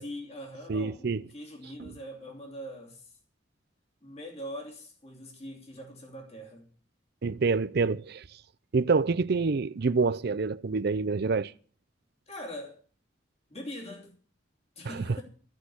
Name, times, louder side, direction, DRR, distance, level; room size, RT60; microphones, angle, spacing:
voice 1, 0.0-3.1 4.0-6.7 12.3-12.8 13.5-14.1 14.8-15.2, equal, 35° left, 3.0 m, -42 dB
voice 2, 0.7-1.2 1.8-1.9 7.2-8.2 8.7-11.5 14.8-15.2, right 4 dB, 55° right, 0.5 m, -27 dB
13.5 x 6.4 x 9.6 m
head